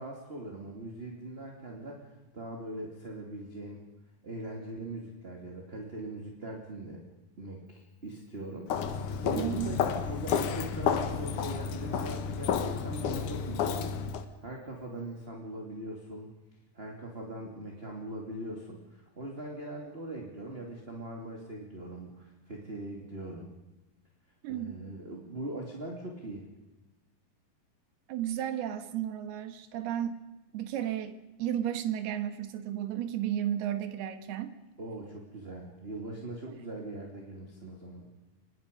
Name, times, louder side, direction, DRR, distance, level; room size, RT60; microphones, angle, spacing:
voice 1, 0.0-2.1 2.3-3.8 4.2-7.0 7.4-8.9 9.2-13.9 14.4-16.3 16.7-23.5 24.5-26.4 34.8-38.1, right 1 dB, 20° right, 0 dB, 2.2 m, -41 dB
Walk footsteps, 8.7-14.2, left 7 dB, 60° left, 2.4 m, -31 dB
voice 2, 9.3-9.8 24.4-24.8 28.1-30.2 30.5-34.5 36.5-36.6, right 11 dB, 80° right, 10 dB, 3.3 m, -33 dB
25.5 x 20.5 x 5.3 m, 1.1 s
omnidirectional pair, 4.6 m